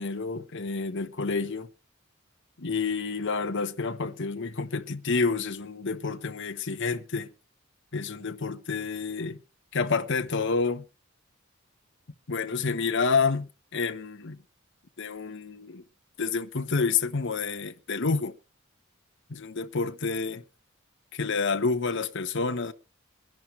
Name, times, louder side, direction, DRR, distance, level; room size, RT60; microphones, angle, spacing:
voice 1, 0.0-1.7 2.6-7.3 7.9-9.4 9.7-10.9 12.3-14.4 15.0-15.8 16.2-18.4 19.3-20.4 21.1-22.7, left 4 dB, 60° left, 1.0 m, -29 dB
23.5 x 11.0 x 3.2 m
head